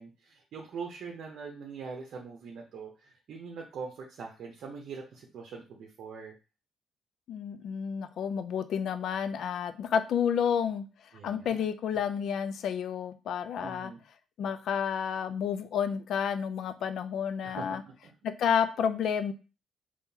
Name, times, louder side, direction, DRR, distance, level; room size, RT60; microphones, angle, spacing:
voice 1, 0.0-6.3 11.1-11.7 13.6-14.0 17.4-17.8, right 5 dB, 65° right, 0 dB, 0.7 m, -42 dB
voice 2, 7.3-10.8 11.2-13.9 14.4-17.8 18.4-19.3, left 7 dB, 70° left, 10 dB, 0.4 m, -30 dB
3.6 x 2.8 x 2.8 m, 0.32 s
cardioid pair, 90°, 0 cm